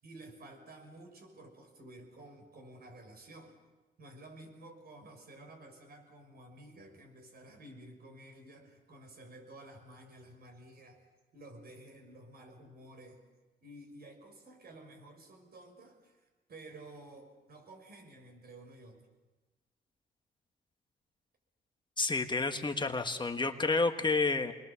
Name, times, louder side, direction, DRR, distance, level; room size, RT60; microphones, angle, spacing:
voice 1, 0.0-3.6 4.0-11.1 11.3-13.2 13.6-19.0, right 1 dB, 50° right, 5 dB, 6.0 m, -52 dB
voice 2, 22.0-24.5, left 3 dB, 25° left, 6 dB, 1.5 m, -30 dB
28.0 x 21.0 x 7.1 m, 1.2 s
cardioid pair, 90°, 20 cm